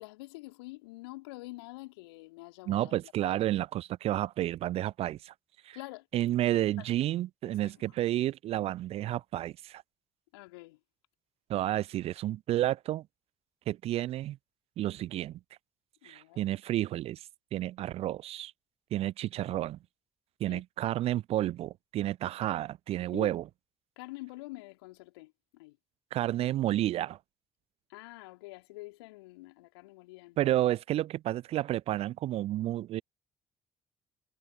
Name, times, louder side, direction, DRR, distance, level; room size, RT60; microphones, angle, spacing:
voice 1, 0.0-3.4 5.7-6.2 6.5-6.9 7.5-7.9 10.3-10.8 16.0-16.4 20.5-20.6 23.1-23.4 24.0-25.8 27.9-30.6, left 22 dB, 75° left, 4.2 m, -47 dB
voice 2, 2.7-5.3 5.6-5.8 6.1-9.8 11.5-13.1 13.7-14.4 14.8-15.4 16.0-17.2 17.5-18.5 18.9-19.8 20.4-23.4 26.1-27.2 30.4-33.0, right 14 dB, 50° right, 0.4 m, -31 dB
figure-of-eight pair, 45°, 14 cm